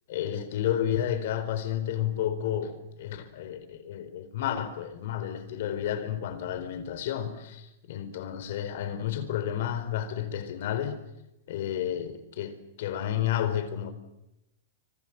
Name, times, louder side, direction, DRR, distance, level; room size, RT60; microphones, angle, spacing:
voice 1, 0.1-11.0 11.5-13.9, left 10 dB, 65° left, 4.3 m, -31 dB
25.5 x 25.0 x 7.6 m
hypercardioid pair, 120°, 0 cm